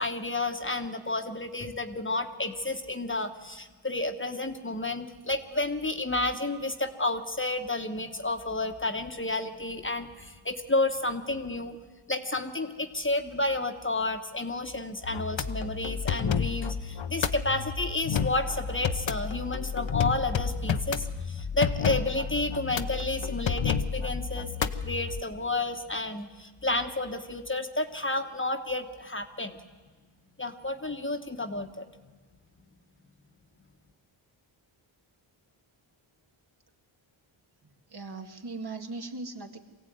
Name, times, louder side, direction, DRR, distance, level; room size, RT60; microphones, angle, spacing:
voice 1, 0.0-11.8 12.1-29.6 30.4-31.8, left 2 dB, 25° left, 6 dB, 1.2 m, -31 dB
sound 1, 15.0-25.2, left 6 dB, 65° left, 0.9 m, -31 dB
voice 2, 37.6-39.6, right 3 dB, 50° right, 4 dB, 2.1 m, -39 dB
23.0 x 16.0 x 9.3 m, 1.3 s
wide cardioid pair, 75°, 50 cm